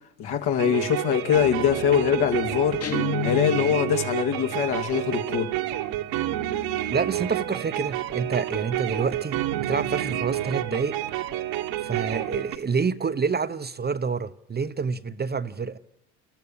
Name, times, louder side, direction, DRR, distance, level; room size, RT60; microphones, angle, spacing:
voice 1, 0.2-2.8 3.2-5.5, left 9 dB, 65° left, 2.7 m, -23 dB
sound 1, 0.6-12.6, right 13 dB, 75° right, 1.9 m, -29 dB
Guitar, 2.8-4.0, left 8 dB, 35° left, 1.7 m, -30 dB
voice 2, 6.9-11.0 11.8-15.8, right 5 dB, 25° right, 0.9 m, -28 dB
29.5 x 13.5 x 8.9 m
supercardioid pair, 90°, 41 cm